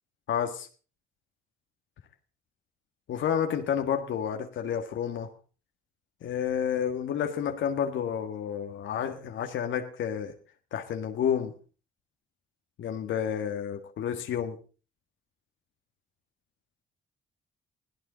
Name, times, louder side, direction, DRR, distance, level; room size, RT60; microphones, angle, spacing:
voice 1, 0.3-0.7 3.1-5.3 6.2-10.3 10.7-11.5 12.8-14.6, left 8 dB, 75° left, 5 dB, 1.6 m, -30 dB
21.0 x 15.5 x 4.0 m, 0.37 s
cardioid pair, 90°, 20 cm